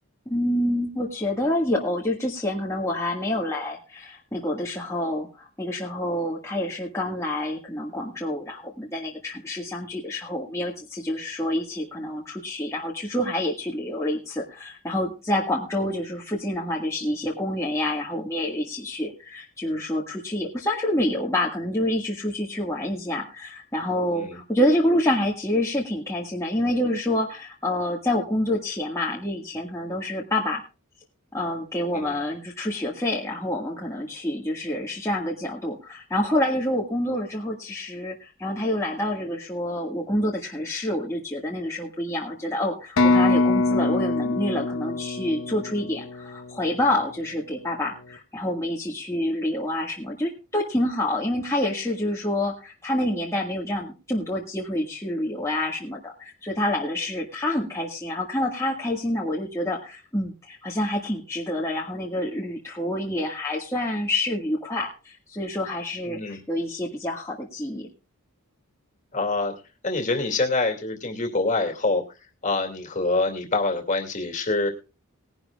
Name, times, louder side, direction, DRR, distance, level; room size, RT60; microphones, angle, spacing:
voice 1, 0.3-30.6 31.3-67.9, left 1 dB, 15° left, -3 dB, 1.8 m, -27 dB
sound 1, 43.0-46.7, left 2 dB, 60° left, 1.1 m, -23 dB
voice 2, 66.1-66.4 69.1-69.5 69.8-72.0 72.4-74.7, left 3 dB, 35° left, 5 dB, 2.4 m, -25 dB
20.0 x 11.0 x 2.4 m, 0.31 s
head